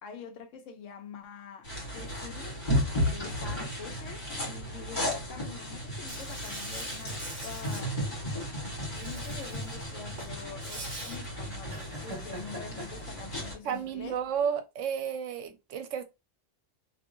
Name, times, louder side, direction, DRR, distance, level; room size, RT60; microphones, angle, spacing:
voice 1, 0.0-2.6 3.0-7.9 8.9-14.2, left 6 dB, 80° left, 1.0 m, -46 dB
sound 1, 1.6-13.5, equal, 40° left, 1.6 m, -34 dB
Insect, 6.1-7.8 8.9-9.8 10.1-11.2, right 2 dB, 45° right, 0.7 m, -44 dB
sound 2, 8.9-14.4, equal, 20° right, 1.3 m, -46 dB
voice 2, 13.6-16.0, right 7 dB, 80° right, 0.9 m, -32 dB
2.8 x 2.7 x 2.6 m
omnidirectional pair, 1.3 m